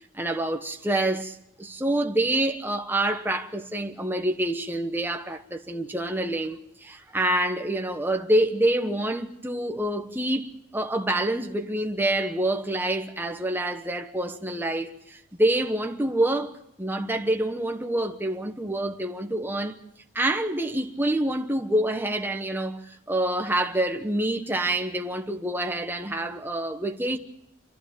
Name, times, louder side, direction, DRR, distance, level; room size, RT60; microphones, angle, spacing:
voice 1, 0.1-19.8 20.1-27.2, right 1 dB, 10° right, 1.1 m, -27 dB
29.0 x 12.0 x 9.0 m
head